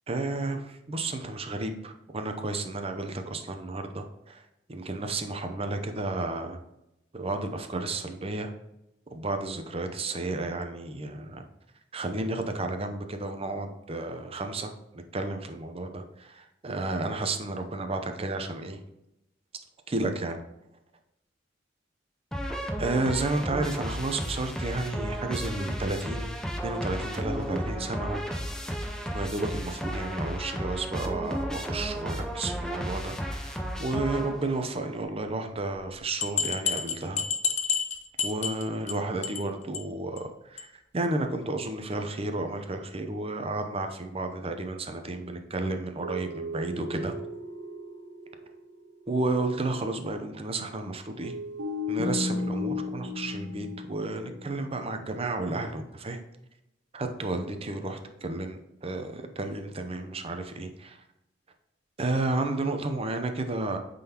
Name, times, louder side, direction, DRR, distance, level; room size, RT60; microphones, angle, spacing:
voice 1, 0.1-4.4 4.7-6.6 7.1-8.5 9.1-11.4 11.9-18.8 19.9-20.4 22.8-26.4 26.6-28.2 29.1-37.2 38.2-40.7 40.9-47.1 49.1-51.3 51.9-56.2 56.9-61.0 62.0-63.8, right 2 dB, 35° right, 6 dB, 0.7 m, -32 dB
sound 1, 22.3-34.7, equal, 5° left, 0.6 m, -33 dB
sound 2, 35.8-35.9 36.2-38.9 39.2-39.5 39.7-39.8 40.2-40.3 40.6-40.7, left 6 dB, 40° left, 0.7 m, -29 dB
sound 3, 46.0-48.6 48.8-48.9 51.2-54.8, left 2 dB, 80° right, 1.4 m, -34 dB
8.7 x 3.9 x 2.9 m, 0.88 s
head